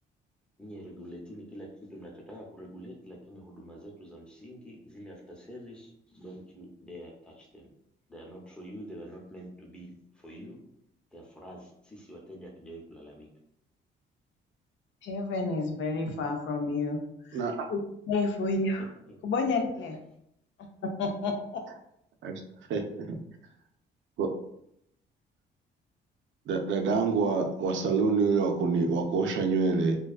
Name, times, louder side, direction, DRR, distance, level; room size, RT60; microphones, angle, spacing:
voice 1, 0.6-1.7 1.9-5.9 6.1-7.1 7.4-7.7 8.1-9.9 10.2-10.6 11.1-13.3 19.1-19.2, equal, 5° left, -2 dB, 0.7 m, -46 dB
voice 2, 15.0-17.0 17.7-18.9 19.2-20.0 21.0-21.6, left 3 dB, 70° left, 4 dB, 0.5 m, -30 dB
voice 3, 17.3-17.7 22.2-22.3 22.7-23.2 24.2-24.3 26.5-30.0, right 4 dB, 70° right, 4 dB, 0.4 m, -26 dB
2.5 x 2.3 x 2.3 m, 0.76 s
cardioid pair, 90°, 20 cm